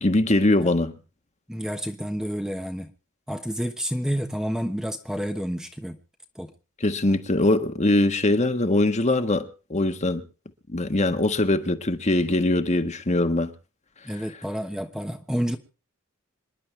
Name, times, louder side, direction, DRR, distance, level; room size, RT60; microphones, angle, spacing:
voice 1, 0.0-0.9 6.8-10.2 10.7-13.5, left 2 dB, 35° left, 1.4 m, -22 dB
voice 2, 1.5-2.9 3.3-6.0 6.3-6.5 14.0-15.6, equal, 5° right, 1.1 m, -29 dB
26.5 x 11.0 x 3.3 m
head